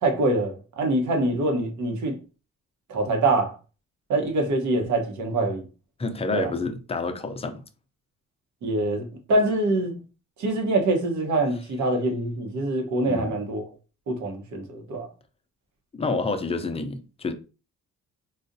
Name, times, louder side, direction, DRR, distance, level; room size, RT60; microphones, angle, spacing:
voice 1, 0.0-2.2 2.9-3.5 4.1-5.6 6.3-6.5 8.6-10.0 10.4-13.6 14.1-15.1, right 2 dB, 70° right, 1.0 m, -24 dB
voice 2, 6.0-7.6 13.1-13.4 15.9-17.3, left 3 dB, 20° left, 0.5 m, -28 dB
3.9 x 2.4 x 2.6 m
cardioid pair, 90°, 30 cm